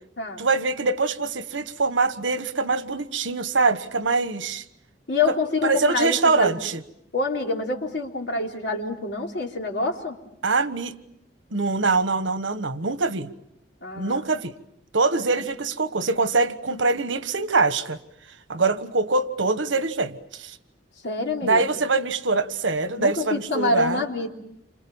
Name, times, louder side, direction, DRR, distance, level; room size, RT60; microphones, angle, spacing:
voice 1, 0.4-4.6 5.6-6.8 10.4-11.0 11.5-13.3 14.0-14.5 14.9-18.0 18.5-20.6 21.4-24.0, right 3 dB, 90° right, 1.3 m, -23 dB
voice 2, 5.1-6.6 7.1-10.2 13.8-14.2 21.0-21.6 22.9-24.3, left 3 dB, 65° left, 3.5 m, -26 dB
29.0 x 26.5 x 7.2 m
head